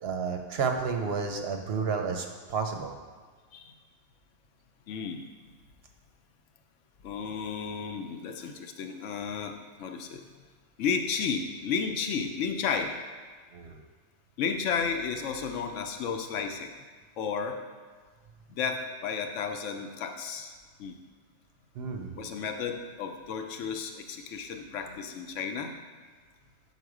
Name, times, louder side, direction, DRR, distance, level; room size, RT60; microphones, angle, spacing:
voice 1, 0.0-3.0 13.5-13.8 21.8-22.3, right 5 dB, 65° right, 4 dB, 0.7 m, -31 dB
voice 2, 4.9-5.2 7.0-10.2 10.8-12.9 14.4-16.7 17.2-17.6 18.6-20.5 20.8-21.0 22.2-25.7, left 6 dB, 80° left, 5 dB, 1.0 m, -33 dB
6.6 x 4.2 x 4.8 m, 1.5 s
omnidirectional pair, 1.3 m